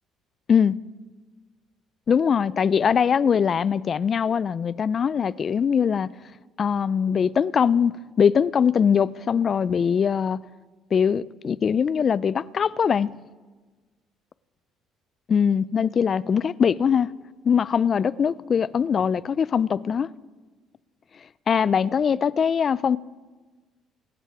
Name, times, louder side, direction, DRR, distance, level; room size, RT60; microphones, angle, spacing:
voice 1, 2.1-6.1 6.6-7.9 8.2-10.4 10.9-13.1 15.3-17.1 17.4-20.1 21.5-23.0, left 7 dB, 40° left, 0.4 m, -22 dB
24.0 x 8.5 x 4.8 m
cardioid pair, 90°, 0 cm